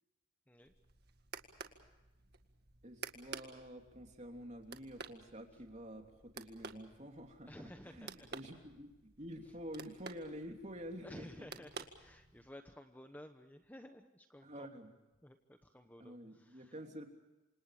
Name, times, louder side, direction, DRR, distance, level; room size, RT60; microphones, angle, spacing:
sound 1, 0.6-12.6, right 5 dB, 50° right, 1.9 m, -52 dB
voice 1, 2.8-11.5 14.4-14.9 16.0-17.1, equal, 35° right, 3 dB, 3.1 m, -49 dB
voice 2, 7.5-8.3 11.0-14.7 15.2-16.7, left 1 dB, 10° left, 7 dB, 1.0 m, -54 dB
28.5 x 26.5 x 5.0 m, 1.0 s
head